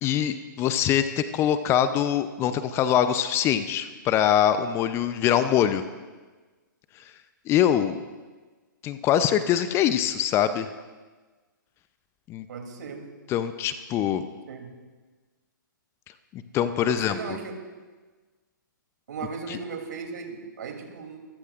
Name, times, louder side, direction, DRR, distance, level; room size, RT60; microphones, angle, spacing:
voice 1, 0.0-5.8 7.5-8.0 8.8-10.7 12.3-12.5 13.3-14.2 16.3-17.4 19.5-19.6, left 10 dB, 25° left, 11 dB, 0.6 m, -23 dB
voice 2, 12.5-13.1 14.5-14.7 16.8-17.6 19.1-21.2, right 5 dB, 60° right, 3 dB, 3.0 m, -36 dB
26.5 x 15.0 x 2.5 m, 1.3 s
figure-of-eight pair, 125°, 11 cm